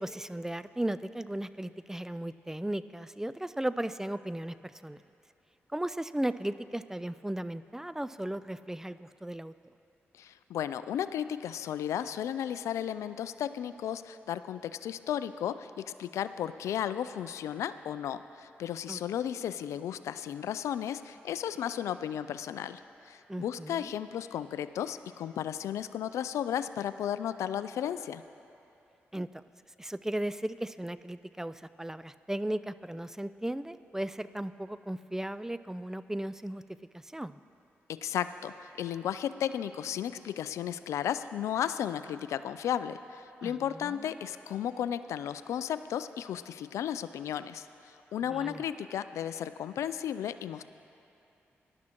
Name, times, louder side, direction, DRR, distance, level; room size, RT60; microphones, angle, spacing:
voice 1, 0.0-5.0 5.7-9.5 18.9-19.0 23.3-23.9 29.1-29.4 29.8-36.6 36.9-37.4 43.4-44.1 48.3-48.6, right 1 dB, 10° right, 14 dB, 0.3 m, -36 dB
voice 2, 10.2-22.8 23.1-28.2 37.9-47.7 48.1-50.6, left 10 dB, 85° left, 13 dB, 0.3 m, -34 dB
19.0 x 12.0 x 3.0 m, 2.7 s
cardioid pair, 55°, 5 cm